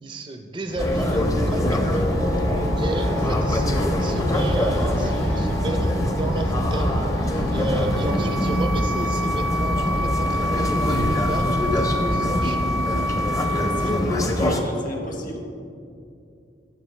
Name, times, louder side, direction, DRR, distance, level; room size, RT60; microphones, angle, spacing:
voice 1, 0.0-2.0 2.8-7.0 7.5-12.8 13.4-14.2, right 2 dB, 25° right, 5 dB, 0.4 m, -33 dB
sound 1, 0.7-13.1, left 1 dB, 70° left, 0.7 m, -32 dB
sound 2, 0.8-14.6, equal, 20° left, 0.6 m, -23 dB
sound 3, 7.7-14.0, left 1 dB, 90° right, 1.3 m, -28 dB
voice 2, 13.5-15.4, equal, 45° left, 1 dB, 1.2 m, -35 dB
9.4 x 7.0 x 3.2 m, 2.5 s
head